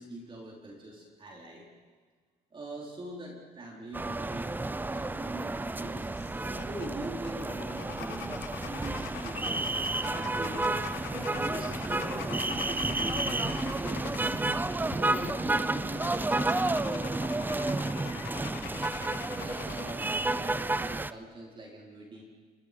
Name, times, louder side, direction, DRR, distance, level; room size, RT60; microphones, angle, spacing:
voice 1, 0.0-1.7 2.5-4.6 4.9-6.1 6.3-9.7 10.1-10.8 11.1-14.5 14.9-18.5 19.3-22.2, right 1 dB, 30° right, -2 dB, 4.5 m, -43 dB
sound 1, 3.9-21.1, right 2 dB, 10° right, 0.6 m, -31 dB
sound 2, 6.2-19.9, left 11 dB, 75° left, 1.2 m, -44 dB
28.5 x 21.0 x 5.3 m, 1.5 s
cardioid pair, 110°, 17 cm